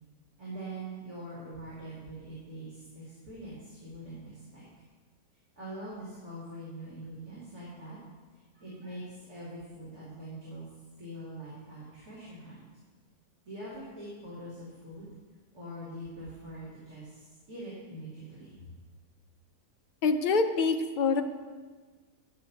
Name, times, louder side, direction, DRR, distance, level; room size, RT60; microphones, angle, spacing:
voice 1, 0.4-4.6 5.6-8.0 8.3-10.7 11.0-12.6 13.4-15.1 15.5-18.7, right 1 dB, 85° right, -8 dB, 3.0 m, -43 dB
voice 2, 20.0-21.2, left 4 dB, 55° left, 6 dB, 0.5 m, -25 dB
12.0 x 6.2 x 5.9 m, 1.4 s
omnidirectional pair, 1.6 m